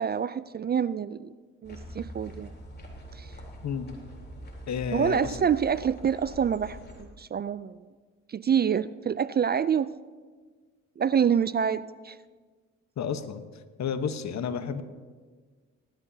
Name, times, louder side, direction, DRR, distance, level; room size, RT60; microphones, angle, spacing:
voice 1, 0.0-1.3 1.6-2.5 3.1-3.3 4.9-7.9 8.3-9.9 11.0-12.2, right 7 dB, 30° right, 17 dB, 0.4 m, -27 dB
sound 1, 1.6-7.0, equal, 30° left, 3.5 m, -44 dB
voice 2, 4.7-5.4 13.0-13.4 13.8-14.8, left 7 dB, 55° left, 10 dB, 1.1 m, -31 dB
18.5 x 13.0 x 2.8 m, 1.5 s
supercardioid pair, 60°, 32 cm